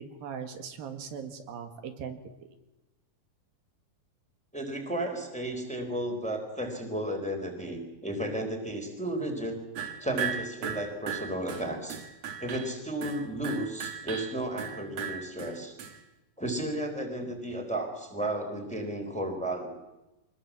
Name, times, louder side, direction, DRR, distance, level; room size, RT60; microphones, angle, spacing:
voice 1, 0.0-2.2, right 7 dB, 80° right, 6 dB, 3.7 m, -39 dB
voice 2, 4.5-9.6 10.0-12.0 12.4-15.8 16.4-19.7, right 1 dB, ahead, 3 dB, 3.8 m, -33 dB
sound 1, 9.8-16.0, right 8 dB, 50° right, 2.6 m, -37 dB
25.0 x 20.5 x 7.5 m, 1.0 s
omnidirectional pair, 4.1 m